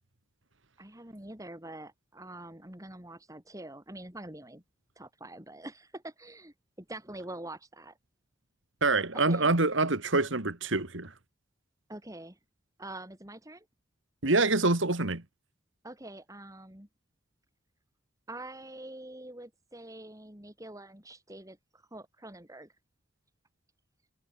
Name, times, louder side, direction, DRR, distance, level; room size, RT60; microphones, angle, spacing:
voice 1, 0.8-4.6 5.0-8.0 9.1-9.5 11.9-12.4 12.8-13.6 15.8-16.9 18.3-22.8, right 1 dB, 15° right, 2.8 m, -45 dB
voice 2, 8.8-11.1 14.2-15.2, right 3 dB, 70° right, 2.3 m, -26 dB
head